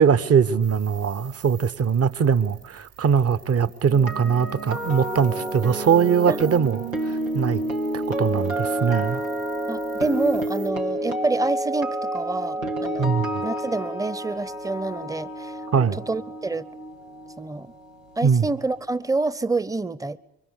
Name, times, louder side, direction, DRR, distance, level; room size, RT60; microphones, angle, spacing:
voice 1, 0.0-7.6 7.9-9.2 13.0-13.4 15.7-16.0 18.2-18.4, right 6 dB, 35° right, 1.2 m, -21 dB
sound 1, 0.6-10.7, right 10 dB, 70° right, 3.8 m, -49 dB
sound 2, 3.8-17.9 18.2-18.5, right 1 dB, 90° right, 1.3 m, -29 dB
voice 2, 6.3-6.6 9.7-16.7 17.4-17.7 18.2-20.2, right 3 dB, 10° right, 1.0 m, -28 dB
26.0 x 24.0 x 8.5 m
figure-of-eight pair, 40°, 40 cm